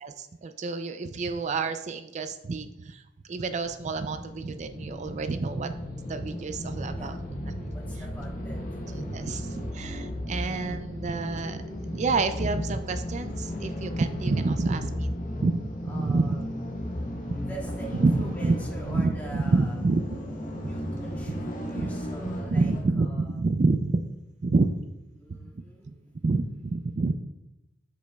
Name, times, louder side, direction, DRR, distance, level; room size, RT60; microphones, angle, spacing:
voice 1, 0.0-3.0 3.3-5.7 6.1-7.2 8.9-11.6 11.9-15.1 15.4-15.6 15.9-16.4 17.9-18.6 18.9-20.0 20.6-20.8 21.3-21.4 21.7-21.9 22.5-24.0 24.4-24.8 25.3-25.5 25.9-26.0 26.2-27.1, right 3 dB, 40° right, 9 dB, 0.4 m, -28 dB
sound 1, 3.4-22.9, left 1 dB, 45° left, 1.1 m, -35 dB
voice 2, 7.7-9.0 15.9-16.4 16.7-17.0 17.4-19.8 20.6-22.7 23.0-23.3 25.2-26.1, right 3 dB, 10° left, -4 dB, 1.9 m, -45 dB
13.0 x 5.1 x 2.3 m, 0.92 s
head